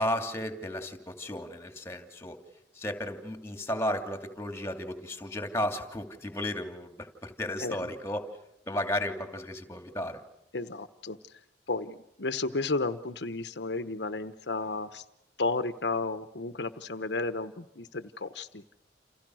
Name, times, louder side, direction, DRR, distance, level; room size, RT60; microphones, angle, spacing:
voice 1, 0.0-2.4 2.7-8.3 8.7-10.2, left 1 dB, 15° left, 6 dB, 2.8 m, -34 dB
voice 2, 10.5-11.2 11.7-15.0 15.4-18.6, left 3 dB, 75° left, 11 dB, 1.1 m, -33 dB
29.0 x 29.0 x 6.4 m, 0.82 s
head